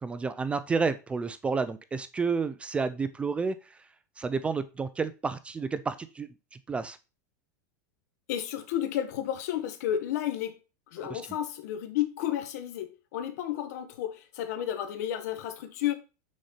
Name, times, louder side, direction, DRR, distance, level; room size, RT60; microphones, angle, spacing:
voice 1, 0.0-3.8 4.2-7.0 11.0-11.2, right 4 dB, 10° right, 0.4 m, -31 dB
voice 2, 8.3-10.5 10.9-15.9, left 11 dB, 65° left, 1.3 m, -32 dB
6.3 x 4.2 x 5.7 m
supercardioid pair, 145°, 10 cm